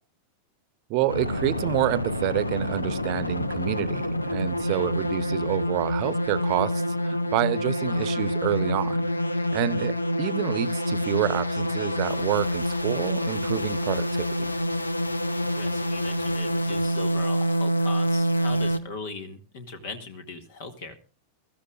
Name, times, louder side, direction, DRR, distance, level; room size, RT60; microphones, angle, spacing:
voice 1, 0.9-9.0 9.3-14.5, right 15 dB, 45° right, 17 dB, 1.0 m, -28 dB
sound 1, 1.1-18.8, equal, 80° left, 0.8 m, -27 dB
voice 2, 4.6-4.9 7.9-8.1 15.4-21.0, left 3 dB, 55° left, 7 dB, 2.0 m, -39 dB
23.5 x 13.5 x 2.5 m, 0.32 s
figure-of-eight pair, 90°, 0 cm